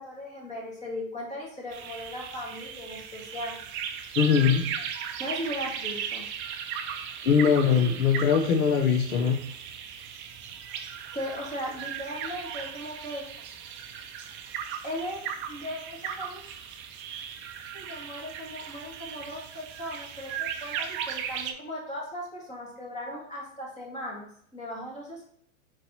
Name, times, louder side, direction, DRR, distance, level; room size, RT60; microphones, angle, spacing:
voice 1, 0.0-3.6 5.2-6.2 11.1-13.3 14.8-15.2 15.5-16.4 17.7-24.3 24.5-25.2, equal, 15° left, -3 dB, 2.0 m, -37 dB
sound 1, 1.7-21.5, right 8 dB, 30° right, 0.5 m, -37 dB
voice 2, 4.2-4.6 7.3-9.4, left 7 dB, 90° left, 4 dB, 0.7 m, -21 dB
4.6 x 3.8 x 3.0 m, 0.64 s
hypercardioid pair, 110°, 41 cm